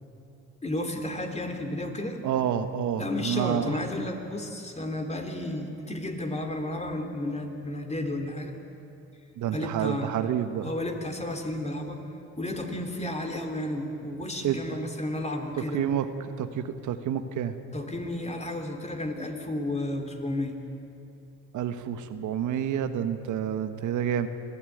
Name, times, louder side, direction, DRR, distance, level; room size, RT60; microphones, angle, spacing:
voice 1, 0.6-2.2 3.0-8.5 9.5-10.1 10.6-12.0 12.4-15.9 17.7-20.6, left 1 dB, 20° left, 4 dB, 3.3 m, -32 dB
voice 2, 2.2-3.8 9.4-10.7 14.4-14.8 15.7-17.5 21.5-24.3, right 9 dB, 80° right, 9 dB, 1.4 m, -29 dB
26.0 x 16.5 x 9.3 m, 2.7 s
cardioid pair, 90°, 30 cm